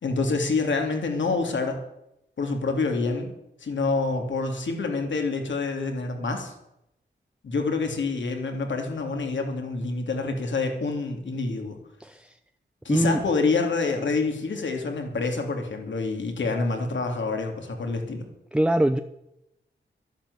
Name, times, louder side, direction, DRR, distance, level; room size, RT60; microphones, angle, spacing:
voice 1, 0.0-1.8 2.4-3.3 3.6-6.5 7.4-11.8 12.8-18.2, left 3 dB, 70° left, 3 dB, 3.1 m, -27 dB
voice 2, 12.0-12.3 12.9-13.2 18.5-19.0, right 1 dB, 5° right, 8 dB, 0.7 m, -22 dB
12.5 x 11.5 x 8.1 m, 0.85 s
wide cardioid pair, 90°, 20 cm